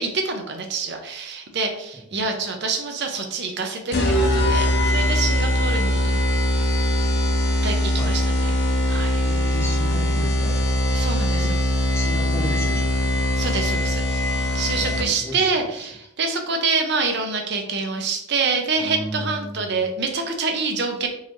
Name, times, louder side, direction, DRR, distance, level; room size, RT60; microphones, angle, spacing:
voice 1, 0.0-6.1 7.6-8.5 8.9-9.2 10.9-11.4 13.4-21.1, right 4 dB, 55° right, 4 dB, 0.6 m, -26 dB
voice 2, 1.9-2.4 7.9-8.2 9.2-10.8 11.2-13.1 14.7-15.9 18.8-19.8, equal, 10° left, -2 dB, 0.8 m, -34 dB
sound 1, 3.9-15.3, equal, 55° left, 0.6 m, -21 dB
3.9 x 2.6 x 3.0 m, 0.79 s
head